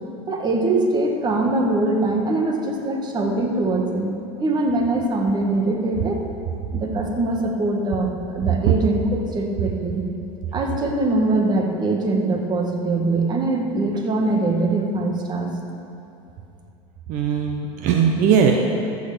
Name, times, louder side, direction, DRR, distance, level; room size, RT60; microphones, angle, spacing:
voice 1, 0.3-4.1 4.4-6.2 6.7-10.1 10.5-15.5, right 2 dB, 30° right, 2 dB, 1.7 m, -22 dB
voice 2, 17.1-18.5, right 8 dB, 60° right, 2 dB, 1.0 m, -18 dB
14.5 x 6.6 x 6.9 m, 2.8 s
supercardioid pair, 130°, 15 cm